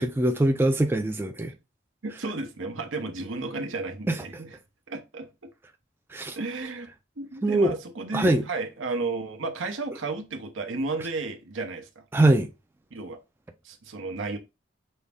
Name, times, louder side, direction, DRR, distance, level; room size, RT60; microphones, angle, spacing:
voice 1, 0.0-1.5 4.1-4.2 6.1-6.4 7.4-7.8 8.1-8.4 12.1-12.5, right 1 dB, 10° right, 0.3 m, -22 dB
voice 2, 2.0-4.6 4.9-5.5 6.4-6.9 7.2-12.0 12.9-13.2 13.6-14.4, right 3 dB, 85° right, 0.8 m, -33 dB
5.4 x 2.0 x 3.5 m
head